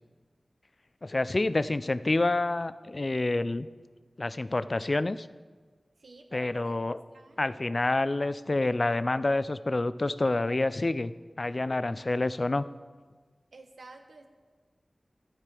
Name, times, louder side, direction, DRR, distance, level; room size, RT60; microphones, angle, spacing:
voice 1, 1.0-3.7 4.2-5.3 6.3-7.0 7.4-11.1 11.4-12.7, left 2 dB, 50° left, 15 dB, 0.4 m, -28 dB
voice 2, 6.0-6.8 7.1-7.5 13.5-14.3, right 3 dB, 90° right, 4 dB, 1.1 m, -50 dB
12.5 x 7.5 x 4.8 m, 1.4 s
cardioid pair, 45°, 0 cm